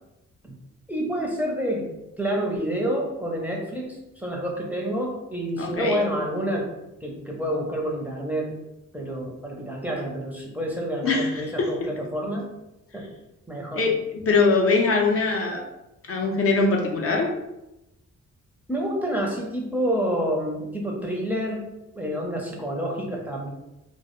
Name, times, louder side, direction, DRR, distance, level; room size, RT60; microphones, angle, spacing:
voice 1, 0.9-1.9 2.2-6.7 7.0-8.6 8.9-12.5 12.9-13.0 13.5-13.9 18.7-21.7 21.9-23.5, equal, 5° right, -1 dB, 0.5 m, -28 dB
voice 2, 5.6-6.0 11.0-11.7 13.7-15.6 16.1-17.3, left 3 dB, 50° left, 1 dB, 0.5 m, -22 dB
2.1 x 2.1 x 3.0 m, 0.93 s
cardioid pair, 75°, 30 cm